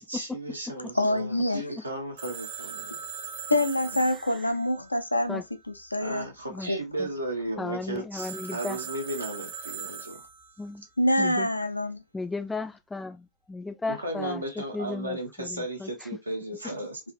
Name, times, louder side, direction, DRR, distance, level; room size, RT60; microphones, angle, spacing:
voice 1, 0.1-3.0 6.0-10.2 13.9-17.0, right 1 dB, 85° right, 0.9 m, -35 dB
voice 2, 0.9-1.8 3.5-6.3 6.6-6.8 11.0-12.0, left 1 dB, 85° left, 0.4 m, -26 dB
Telephone, 2.2-5.8 8.2-10.7, right 7 dB, 55° right, 1.0 m, -40 dB
voice 3, 7.6-8.8 10.6-10.8 11.2-11.5 12.1-16.1, left 3 dB, 10° left, 0.4 m, -35 dB
3.3 x 2.4 x 2.3 m
figure-of-eight pair, 90°, 0 cm